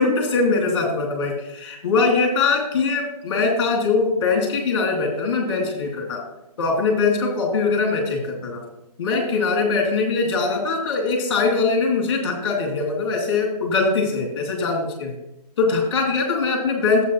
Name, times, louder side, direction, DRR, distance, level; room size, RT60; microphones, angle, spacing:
voice 1, 0.0-6.2 6.6-8.6 9.0-15.1 15.6-17.0, left 4 dB, 35° left, 1 dB, 2.6 m, -22 dB
12.0 x 7.9 x 3.0 m, 0.90 s
figure-of-eight pair, 145°, 21 cm